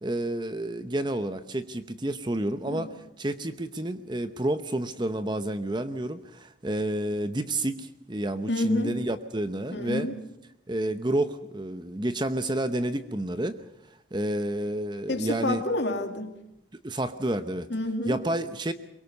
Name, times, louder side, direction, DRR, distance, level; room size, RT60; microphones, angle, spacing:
voice 1, 0.0-10.1 10.7-13.6 14.1-15.6 16.8-17.7 18.0-18.7, right 1 dB, 25° right, 10 dB, 0.8 m, -30 dB
voice 2, 8.5-8.9 9.7-10.1 15.1-16.3 17.7-18.2, left 2 dB, 65° left, 5 dB, 2.6 m, -29 dB
23.0 x 23.0 x 6.8 m, 0.85 s
head